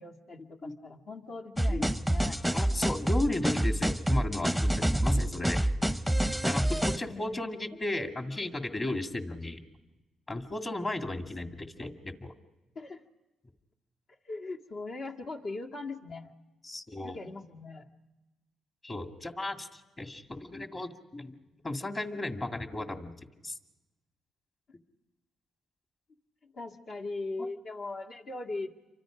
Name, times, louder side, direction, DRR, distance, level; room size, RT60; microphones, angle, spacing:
voice 1, 0.0-2.4 7.0-7.4 12.8-13.0 14.3-16.3 17.0-17.8 26.4-28.7, left 3 dB, 60° left, 0 dB, 2.0 m, -40 dB
sound 1, 1.6-7.0, right 1 dB, 5° left, 0.8 m, -27 dB
voice 2, 2.5-5.6 6.4-9.6 10.3-12.3 16.6-17.2 18.8-21.4 21.6-23.1 23.4-23.6 27.4-27.5, left 2 dB, 30° left, 5 dB, 2.2 m, -35 dB
28.5 x 25.0 x 5.1 m, 1.1 s
cardioid pair, 90°, 0 cm